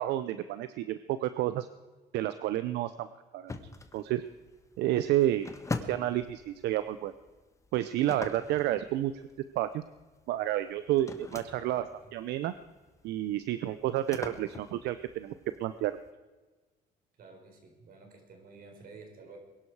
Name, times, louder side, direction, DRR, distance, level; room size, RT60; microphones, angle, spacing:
voice 1, 0.0-1.7 2.1-3.1 3.3-3.6 3.9-4.2 4.8-5.5 5.9-7.1 7.7-9.1 9.6-9.8 10.3-11.8 12.1-12.5 13.0-16.0, right 13 dB, 80° right, 12 dB, 0.7 m, -30 dB
sound 1, 3.5-16.1, left 3 dB, 20° left, 1.3 m, -44 dB
voice 2, 11.4-12.1 17.2-19.4, right 4 dB, 60° right, 3 dB, 4.5 m, -52 dB
22.0 x 11.0 x 4.8 m, 1.3 s
cardioid pair, 110°, 17 cm